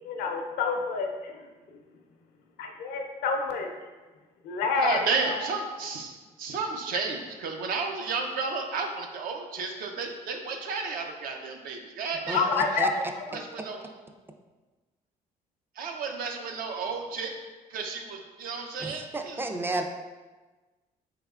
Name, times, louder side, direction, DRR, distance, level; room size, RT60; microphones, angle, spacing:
voice 1, 0.0-1.3 2.6-3.7 4.4-5.4 12.3-13.4, left 4 dB, 80° left, 3 dB, 0.6 m, -28 dB
voice 2, 4.8-12.8 13.3-13.8 15.8-17.3 17.7-19.4, right 4 dB, 70° right, 3 dB, 0.6 m, -32 dB
voice 3, 12.3-12.9 18.8-19.8, right 2 dB, 15° right, 5 dB, 0.3 m, -32 dB
4.1 x 3.3 x 2.4 m, 1.3 s
cardioid pair, 95°, 16 cm